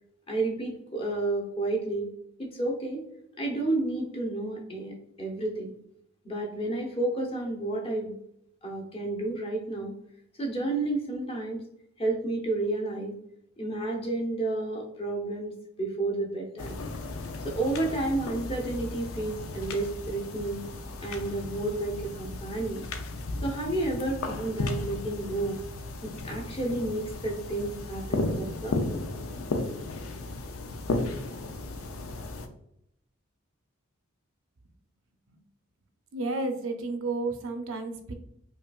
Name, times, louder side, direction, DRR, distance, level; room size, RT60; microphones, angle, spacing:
voice 1, 0.3-2.1 2.4-3.0 3.4-5.7 6.2-8.1 8.6-9.9 10.4-11.6 12.0-13.1 13.6-15.5 15.8-16.8 17.4-20.6 21.0-22.9 23.4-25.6 26.0-28.8, right 2 dB, 25° left, -1 dB, 0.8 m, -31 dB
sound 1, 16.6-32.5, left 2 dB, 85° left, 0.5 m, -35 dB
voice 2, 36.1-38.1, right 3 dB, 75° right, 6 dB, 0.5 m, -32 dB
5.1 x 2.4 x 2.3 m, 0.76 s
head